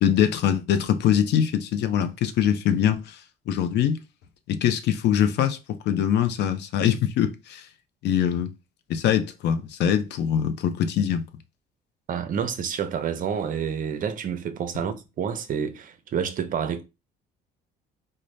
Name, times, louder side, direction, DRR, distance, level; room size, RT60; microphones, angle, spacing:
voice 1, 0.0-3.2 3.5-4.0 4.5-5.6 5.9-7.7 8.0-8.5 8.9-11.3, left 9 dB, 70° left, 0.6 m, -23 dB
voice 2, 12.1-16.8, right 7 dB, 50° right, 0.6 m, -29 dB
4.0 x 2.1 x 3.2 m
cardioid pair, 105°, 18 cm